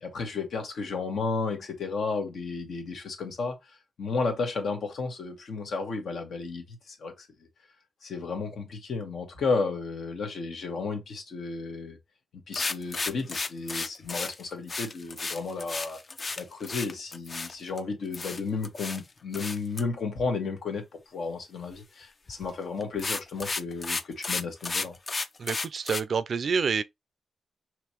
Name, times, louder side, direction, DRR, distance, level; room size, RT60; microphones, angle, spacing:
voice 1, 0.0-7.3 8.0-12.0 12.5-16.0 16.4-25.0, left 4 dB, 80° left, 1.3 m, -33 dB
sound 1, 12.5-17.8 18.1-19.0 19.3-19.8 22.3-22.5 22.8-26.0, left 3 dB, 40° left, 0.4 m, -33 dB
voice 2, 25.4-26.8, right 5 dB, 65° right, 0.4 m, -27 dB
5.0 x 3.1 x 3.0 m
cardioid pair, 75°, 0 cm